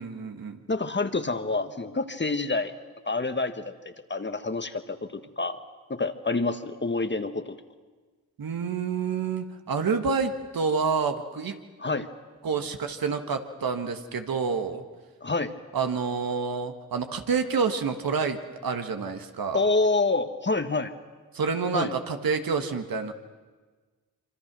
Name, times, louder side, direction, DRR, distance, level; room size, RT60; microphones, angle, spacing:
voice 1, 0.0-0.6 8.4-11.6 12.4-14.8 15.7-19.6 21.3-23.1, right 5 dB, 70° right, 7 dB, 1.6 m, -28 dB
voice 2, 0.7-2.7 3.1-3.6 4.1-5.6 5.9-7.6 11.8-12.1 15.2-15.5 19.5-20.9 21.7-21.9, left 3 dB, 30° left, 9 dB, 1.5 m, -27 dB
25.0 x 24.0 x 6.2 m, 1.4 s
cardioid pair, 45°, 36 cm